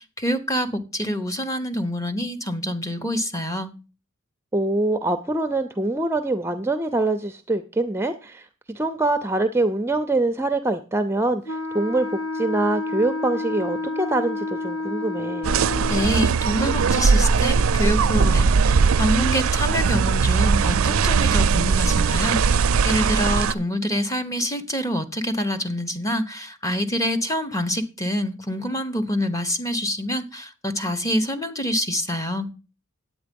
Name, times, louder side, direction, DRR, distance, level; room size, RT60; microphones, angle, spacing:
voice 1, 0.0-3.7 15.9-32.5, equal, 15° left, 0.9 m, -26 dB
voice 2, 4.5-15.5, right 2 dB, 10° right, 0.5 m, -24 dB
Wind instrument woodwind instrument, 11.5-16.3, left 2 dB, 75° left, 1.6 m, -30 dB
sound 1, 15.4-23.5, right 5 dB, 70° right, 0.4 m, -19 dB
9.5 x 8.3 x 5.2 m
head